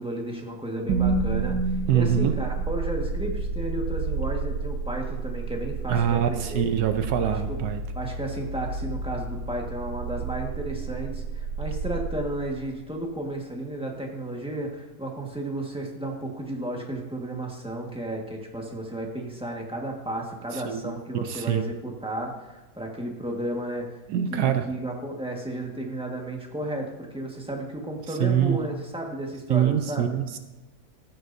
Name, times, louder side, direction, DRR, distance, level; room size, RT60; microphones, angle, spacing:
voice 1, 0.0-6.7 7.2-7.6 7.9-24.0 24.3-30.1, right 1 dB, 5° right, 0 dB, 1.4 m, -33 dB
sound 1, 0.9-13.0, right 4 dB, 85° right, 1.4 m, -30 dB
voice 2, 1.9-2.3 5.9-7.8 20.5-20.9 21.2-21.6 24.1-24.6 28.2-28.6 29.5-30.4, right 9 dB, 70° right, 8 dB, 1.2 m, -24 dB
14.5 x 9.4 x 2.7 m, 1.1 s
omnidirectional pair, 1.9 m